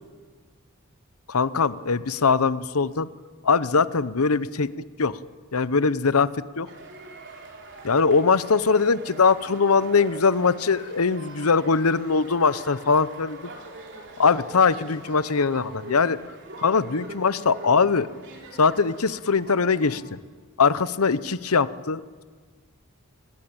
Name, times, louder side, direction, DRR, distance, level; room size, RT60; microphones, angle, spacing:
voice 1, 1.3-3.1 3.4-4.7 5.0-5.2 5.5-6.7 7.8-13.4 14.2-16.2 16.6-18.1 18.6-20.0 20.6-22.2, left 4 dB, 80° left, 16 dB, 0.9 m, -21 dB
sound 1, 6.7-20.0, right 2 dB, 55° right, 3.8 m, -43 dB
24.5 x 20.0 x 8.8 m, 1.5 s
head